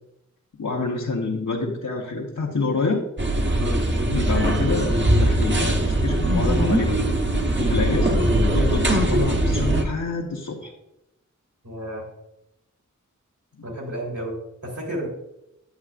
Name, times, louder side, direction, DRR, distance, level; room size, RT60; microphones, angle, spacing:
voice 1, 0.6-3.0 4.1-7.0 7.6-10.7 13.6-13.7, left 3 dB, 85° left, -3 dB, 1.1 m, -27 dB
sound 1, 3.2-9.8, right 1 dB, 40° right, 1.1 m, -21 dB
voice 2, 11.6-12.1 13.6-14.4 14.6-15.1, right 1 dB, 75° right, -2 dB, 3.4 m, -32 dB
9.4 x 8.2 x 2.5 m, 0.85 s
wide cardioid pair, 55°, 31 cm